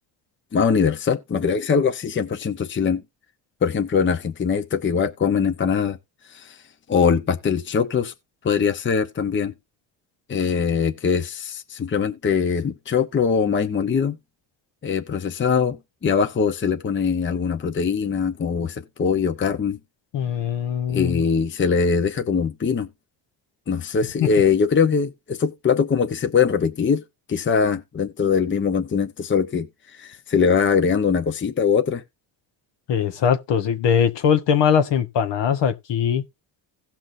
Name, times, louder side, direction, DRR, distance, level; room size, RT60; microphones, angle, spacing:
voice 1, 0.5-3.0 3.6-6.0 6.3-6.6 6.9-8.1 8.4-9.5 10.3-14.2 14.8-15.8 16.0-19.8 20.9-22.9 23.7-27.0 27.3-29.7 30.0-32.0, left 6 dB, 25° left, 0.8 m, -22 dB
voice 2, 20.1-21.2 32.9-36.2, left 8 dB, 60° left, 1.2 m, -21 dB
17.0 x 5.9 x 2.6 m
cardioid pair, 90°, 48 cm